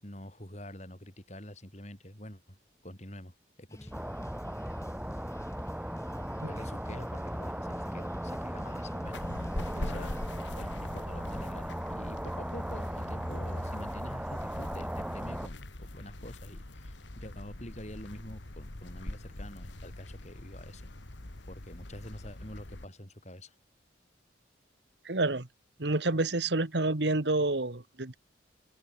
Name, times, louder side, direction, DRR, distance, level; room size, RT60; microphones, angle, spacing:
voice 1, 0.0-2.6 2.8-3.3 3.6-3.9 6.5-9.3 9.8-10.2 10.5-20.8 21.5-23.5, left 1 dB, 35° left, 7.7 m, -46 dB
sound 1, 3.7-10.3, equal, 15° left, 5.0 m, -48 dB
sound 2, 3.9-15.5, equal, 5° right, 7.2 m, -37 dB
sound 3, 9.1-22.8, left 1 dB, 75° left, 2.1 m, -43 dB
voice 2, 25.0-25.5 25.8-28.2, right 2 dB, 65° right, 1.6 m, -28 dB
open air
head